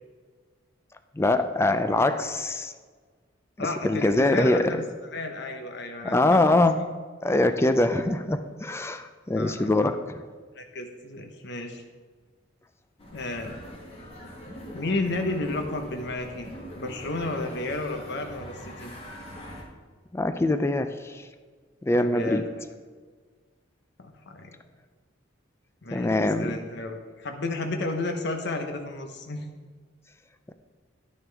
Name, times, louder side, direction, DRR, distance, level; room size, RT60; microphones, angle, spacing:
voice 1, 1.2-2.7 3.6-4.8 6.0-6.8 7.2-9.9 20.1-21.2 21.8-22.4 25.9-26.5, left 2 dB, 15° left, 9 dB, 0.4 m, -23 dB
voice 2, 3.6-4.9 5.1-6.6 9.3-10.0 10.6-11.8 13.1-13.6 14.7-16.5 16.7-18.9 21.9-22.6 24.0-24.5 25.8-29.4, left 2 dB, 65° left, 4 dB, 1.0 m, -32 dB
sound 1, 13.0-19.6, equal, 30° left, 1.6 m, -43 dB
10.5 x 9.5 x 3.4 m, 1.5 s
head